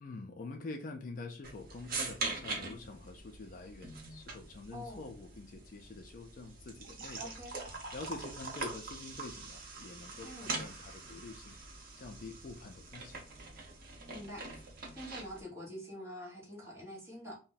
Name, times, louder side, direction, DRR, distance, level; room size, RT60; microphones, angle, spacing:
voice 1, 0.0-7.3 7.9-11.6 12.0-13.2, left 3 dB, 45° left, 5 dB, 0.4 m, -46 dB
sound 1, 1.4-15.4, right 3 dB, 50° right, 0.8 m, -43 dB
voice 2, 4.7-5.0 7.2-7.6 10.2-10.5 14.1-14.4 14.9-17.4, equal, 15° right, -5 dB, 1.2 m, -45 dB
2.5 x 2.1 x 3.9 m, 0.34 s
head